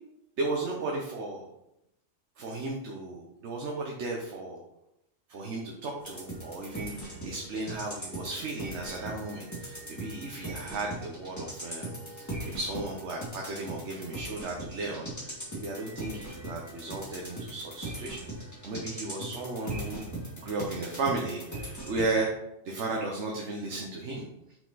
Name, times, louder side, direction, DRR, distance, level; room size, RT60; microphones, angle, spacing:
voice 1, 0.4-1.4 2.4-4.6 5.3-18.2 18.6-20.0 20.4-22.3 22.6-24.2, right 3 dB, 80° right, 0 dB, 1.2 m, -35 dB
sound 1, 6.0-22.2, right 1 dB, 15° left, 1.7 m, -40 dB
5.8 x 4.9 x 4.0 m, 0.85 s
omnidirectional pair, 1.2 m